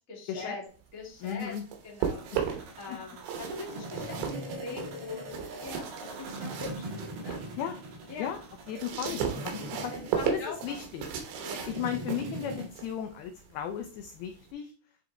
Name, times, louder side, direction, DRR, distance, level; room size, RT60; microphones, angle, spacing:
voice 1, 0.1-0.6 0.9-1.5 1.8-6.9 7.2-7.4 8.1-8.3 9.7-10.8 11.4-11.7, left 4 dB, 30° left, -3 dB, 1.6 m, -43 dB
sound 1, 1.0-2.8 3.2-7.5 7.9-14.5, right 7 dB, 80° right, 3.3 m, -36 dB
voice 2, 1.2-1.6 2.9-3.0 7.6-7.7 8.2-8.4 8.7-9.9 10.2-11.1 11.7-14.7, left 9 dB, 85° left, 7 dB, 2.2 m, -35 dB
sound 2, 2.0-12.7, right 1 dB, 60° right, 3.4 m, -41 dB
9.9 x 3.8 x 3.4 m, 0.41 s
omnidirectional pair, 5.1 m